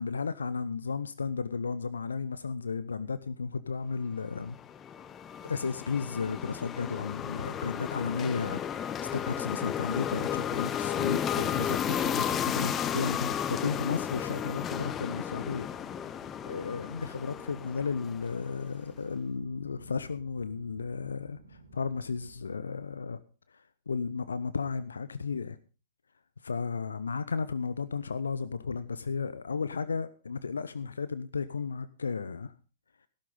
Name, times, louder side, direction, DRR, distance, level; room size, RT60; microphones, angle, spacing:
voice 1, 0.0-4.6 5.4-15.7 16.4-23.2 23.5-25.6 26.4-32.5, left 5 dB, 70° left, 15 dB, 0.7 m, -34 dB
sound 1, 4.4-18.7, left 9 dB, 20° left, 0.7 m, -33 dB
sound 2, 11.7-22.4, right 4 dB, 70° right, 2.5 m, -55 dB
14.5 x 12.5 x 3.8 m, 0.35 s
figure-of-eight pair, 110°, 0 cm